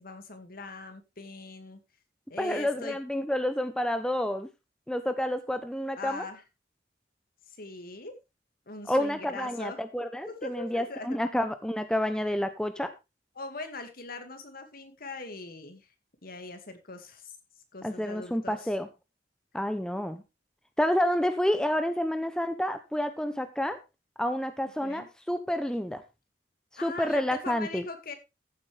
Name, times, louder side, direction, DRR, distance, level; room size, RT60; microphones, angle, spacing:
voice 1, 0.0-1.8 2.3-3.0 6.0-6.4 7.5-8.1 8.7-9.8 10.3-11.2 13.4-15.9 16.2-17.3 17.7-18.7 24.8-25.1 26.8-28.1, left 3 dB, 55° left, 7 dB, 2.1 m, -41 dB
voice 2, 2.4-4.5 4.9-6.3 8.9-12.9 17.8-18.9 19.5-20.2 20.8-23.8 24.2-26.0 26.8-27.8, left 1 dB, 5° left, 9 dB, 0.7 m, -29 dB
14.5 x 8.0 x 3.3 m, 0.25 s
head